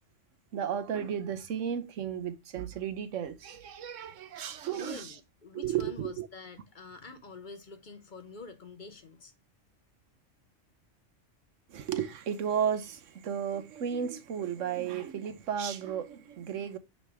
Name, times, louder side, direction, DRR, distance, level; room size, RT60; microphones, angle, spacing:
voice 1, 0.5-5.1 5.5-6.3 11.7-16.8, right 8 dB, 85° right, 1.2 m, -34 dB
voice 2, 4.7-9.3, left 3 dB, 45° left, 0.8 m, -47 dB
8.7 x 3.3 x 4.7 m
omnidirectional pair, 1.3 m